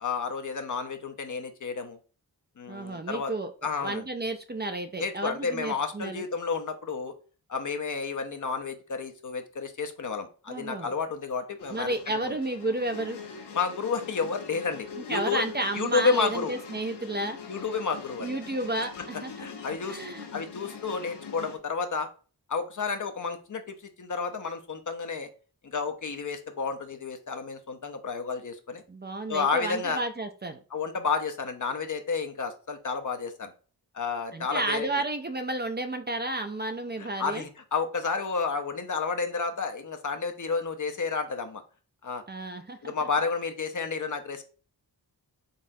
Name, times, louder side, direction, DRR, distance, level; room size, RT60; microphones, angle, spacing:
voice 1, 0.0-2.0 2.6-3.3 3.6-4.1 5.0-7.1 7.5-11.9 12.2-12.3 13.5-15.4 15.7-16.6 17.5-18.3 19.0-19.1 19.4-20.0 20.3-22.1 22.5-25.3 25.6-28.8 29.3-30.0 30.7-33.5 33.9-34.9 37.0-41.6 42.0-42.2 42.8-44.5, left 5 dB, 50° left, 7 dB, 0.7 m, -31 dB
voice 2, 2.7-3.5 3.8-6.2 10.5-10.9 11.7-13.2 15.1-17.4 18.2-19.5 19.9-20.3 28.9-30.6 34.3-37.4 42.3-42.9, right 2 dB, 25° right, 7 dB, 0.5 m, -32 dB
sound 1, 11.6-21.6, left 6 dB, 85° left, 0.8 m, -43 dB
4.0 x 3.5 x 2.7 m, 0.37 s
cardioid pair, 50°, 40 cm